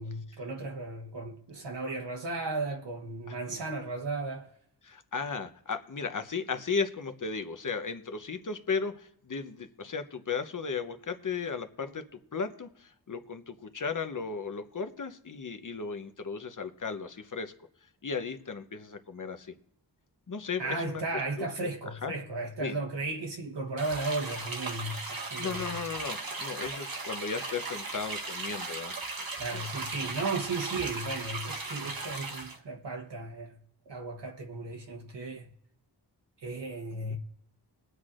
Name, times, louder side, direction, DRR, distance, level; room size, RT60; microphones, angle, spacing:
voice 1, 0.0-4.5 20.6-25.8 29.4-33.5 33.8-35.5 36.4-37.2, right 3 dB, 85° right, 1.3 m, -35 dB
voice 2, 4.8-17.5 18.0-19.5 20.3-21.0 22.0-22.1 22.6-22.8 25.4-29.0 29.5-29.7 30.0-30.1 37.0-37.2, left 5 dB, 50° left, 0.9 m, -35 dB
sound 1, 23.8-32.6, right 3 dB, 55° right, 1.2 m, -37 dB
21.0 x 8.0 x 2.5 m
wide cardioid pair, 95°, 41 cm